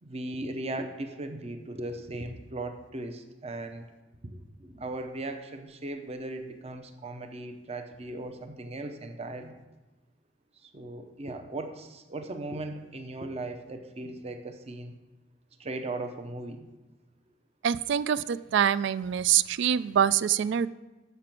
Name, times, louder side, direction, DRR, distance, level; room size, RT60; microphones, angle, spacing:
voice 1, 0.0-3.8 4.2-9.6 10.6-14.9 15.6-16.7, right 2 dB, 35° right, 6 dB, 0.7 m, -38 dB
voice 2, 17.6-20.7, right 9 dB, 65° right, 17 dB, 0.3 m, -25 dB
6.8 x 6.7 x 5.9 m, 1.1 s
head